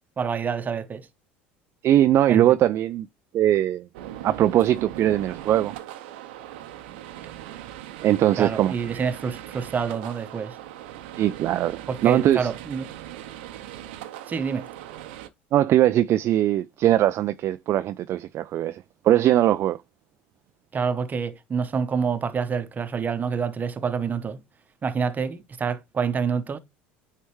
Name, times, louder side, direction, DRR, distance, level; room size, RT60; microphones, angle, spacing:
voice 1, 0.2-1.1 2.3-2.6 8.4-10.6 11.9-12.9 14.3-14.7 20.7-24.4 24.8-26.6, right 6 dB, 30° right, 0.9 m, -27 dB
voice 2, 1.8-3.1 3.3-3.8 4.2-5.7 8.0-9.0 11.2-12.5 15.5-19.8, right 12 dB, 45° right, 0.3 m, -21 dB
sound 1, 3.9-15.3, right 12 dB, 80° right, 0.7 m, -39 dB
9.3 x 3.2 x 3.1 m
hypercardioid pair, 80°, 6 cm